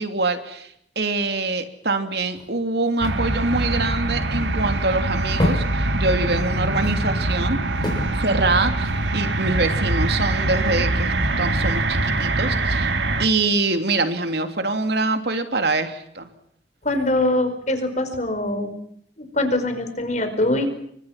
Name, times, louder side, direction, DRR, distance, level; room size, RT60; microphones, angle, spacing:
voice 1, 0.0-7.6 8.1-12.9 13.2-16.3, right 3 dB, 65° right, 7 dB, 3.0 m, -24 dB
sound 1, 2.2-9.8, left 1 dB, 25° left, 7.0 m, -31 dB
sound 2, 3.0-13.3, right 2 dB, 85° right, 2.5 m, -23 dB
voice 2, 16.8-18.7 19.2-20.7, left 1 dB, 40° left, 8 dB, 5.0 m, -23 dB
30.0 x 24.5 x 5.9 m, 0.70 s
head